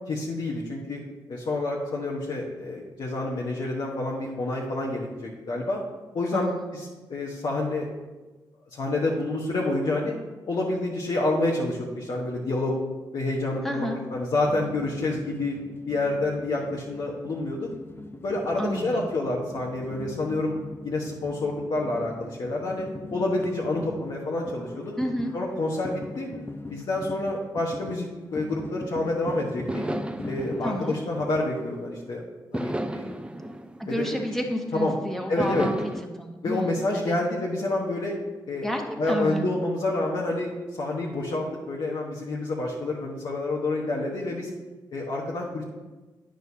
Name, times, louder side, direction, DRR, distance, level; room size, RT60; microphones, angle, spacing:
voice 1, 0.1-1.0 1.3-5.8 6.1-7.9 8.6-10.1 10.5-12.7 13.1-15.6 15.9-17.7 18.2-20.5 20.8-24.9 25.3-26.3 26.7-28.0 28.3-29.9 30.2-32.2 32.5-33.2 33.9-34.0 34.7-34.9 35.3-35.7 36.4-38.2 38.5-38.7 39.0-40.5 40.8-44.5 44.9-45.6, left 2 dB, 65° left, -4 dB, 1.1 m, -28 dB
voice 2, 6.3-6.7 13.6-14.0 18.6-19.1 25.0-25.3 30.6-31.0 33.8-35.7 36.2-37.2 38.6-38.8 39.1-39.5, equal, 5° left, 1 dB, 1.3 m, -30 dB
sound 1, 14.4-31.6, left 2 dB, 25° left, 0.6 m, -41 dB
sound 2, 29.1-29.2 29.7-31.9 32.5-34.8 35.4-36.0, right 1 dB, 10° right, 0.5 m, -34 dB
9.2 x 6.4 x 2.8 m, 1.2 s
supercardioid pair, 50°, 9 cm